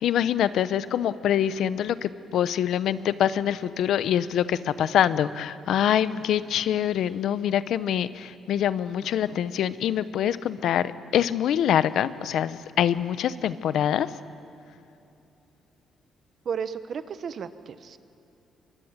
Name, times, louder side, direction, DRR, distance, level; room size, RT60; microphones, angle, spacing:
voice 1, 0.0-14.1, left 10 dB, 75° left, 14 dB, 0.8 m, -25 dB
voice 2, 16.4-18.0, right 7 dB, 55° right, 12 dB, 1.1 m, -33 dB
23.5 x 23.5 x 9.0 m, 2.9 s
cardioid pair, 90°, 0 cm